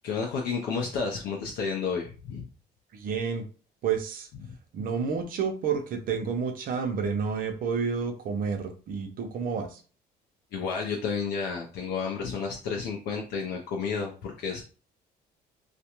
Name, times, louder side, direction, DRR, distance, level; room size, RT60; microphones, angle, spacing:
voice 1, 0.0-2.5 4.4-4.5 10.5-14.6, left 5 dB, 75° left, 0 dB, 0.5 m, -31 dB
voice 2, 2.9-3.4 3.8-4.3 4.7-9.8, right 6 dB, 55° right, 5 dB, 0.7 m, -30 dB
2.4 x 2.2 x 2.9 m, 0.37 s
cardioid pair, 110°, 17 cm